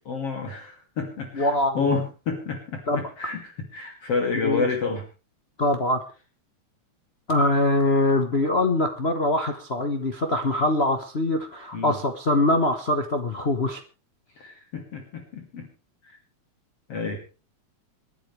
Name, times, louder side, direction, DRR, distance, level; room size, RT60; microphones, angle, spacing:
voice 1, 0.0-5.0 11.7-12.0 14.4-15.7 16.0-16.2 16.9-17.2, left 4 dB, 55° left, 2 dB, 3.5 m, -29 dB
voice 2, 1.3-1.8 2.9-3.1 4.4-4.7 5.6-6.0 7.3-13.8, left 1 dB, 75° left, 4 dB, 0.5 m, -23 dB
28.0 x 10.5 x 3.4 m, 0.33 s
omnidirectional pair, 3.4 m